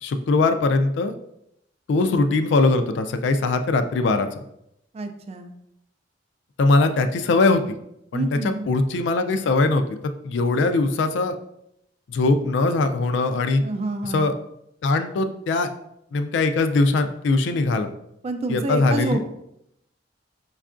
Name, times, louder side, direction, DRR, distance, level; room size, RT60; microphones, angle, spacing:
voice 1, 0.0-1.2 1.9-4.3 6.6-7.8 8.1-8.3 8.7-11.4 12.1-13.6 14.0-14.3 14.8-15.7 16.1-17.9 18.5-19.2, left 3 dB, 70° left, 8 dB, 0.3 m, -21 dB
voice 2, 4.9-5.5 8.1-8.7 13.6-14.3 18.2-19.3, right 2 dB, 35° right, 7 dB, 0.3 m, -28 dB
5.2 x 2.3 x 2.4 m, 0.79 s
head